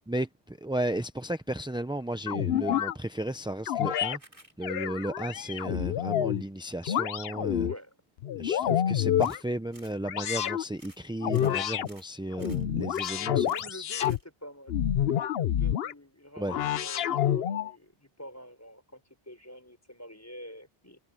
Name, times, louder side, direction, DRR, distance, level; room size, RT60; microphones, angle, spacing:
voice 1, 0.1-4.2 4.6-7.7 8.4-13.9 16.4-16.6, right 1 dB, 5° right, 0.4 m, -34 dB
sound 1, 2.3-2.9 3.7-4.2 4.6-6.4 6.8-7.7 8.2-9.4 10.1-10.6 11.2-11.9 12.3-14.2 14.7-15.9 16.5-17.7, left 10 dB, 75° left, 0.9 m, -28 dB
sound 2, 4.2-4.5 9.2-9.5 9.7-10.0 10.3-10.5 10.8-11.0 11.3-11.6 11.8-12.1 12.4-12.6 12.9-13.2 13.5-13.7 14.0-14.3, right 1 dB, 30° right, 4.3 m, -55 dB
voice 2, 7.6-7.9 13.5-14.7 15.4-21.0, equal, 15° left, 5.6 m, -47 dB
omnidirectional pair, 1.0 m